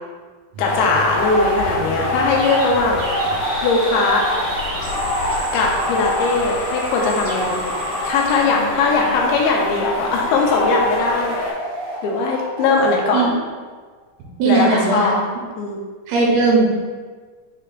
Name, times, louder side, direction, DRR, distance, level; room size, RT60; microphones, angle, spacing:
sound 1, 0.5-9.4 9.9-10.1 10.4-14.3, right 1 dB, 60° right, 1.9 m, -32 dB
voice 1, 0.6-3.0 3.6-4.2 5.5-7.6 8.0-11.4 12.0-13.3 14.4-15.1 15.6-15.8, left 3 dB, 80° left, 0 dB, 2.4 m, -19 dB
sound 2, 0.6-11.5, left 1 dB, 60° left, 2.7 m, -25 dB
voice 2, 14.4-15.1 16.1-16.6, right 3 dB, 80° right, -2 dB, 2.7 m, -17 dB
6.6 x 3.5 x 2.3 m, 1.4 s
omnidirectional pair, 4.5 m